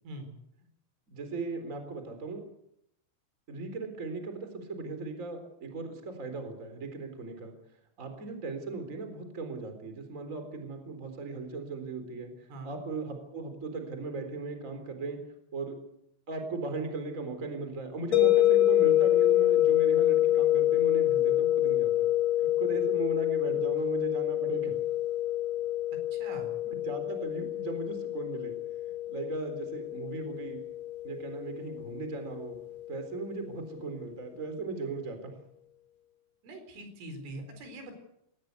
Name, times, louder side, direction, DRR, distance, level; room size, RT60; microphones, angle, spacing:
voice 1, 1.1-2.4 3.5-7.5 8.0-15.2 15.5-15.8 16.3-22.1 22.4-24.7 26.7-28.5 29.1-30.6 31.0-32.6 32.9-35.3, right 3 dB, 20° right, 7 dB, 3.6 m, -37 dB
sound 1, 18.1-33.1, left 13 dB, 40° left, 3.9 m, -27 dB
voice 2, 26.1-26.5 36.4-37.9, right 1 dB, 80° right, 7 dB, 6.7 m, -43 dB
21.0 x 19.0 x 8.5 m, 0.78 s
omnidirectional pair, 5.6 m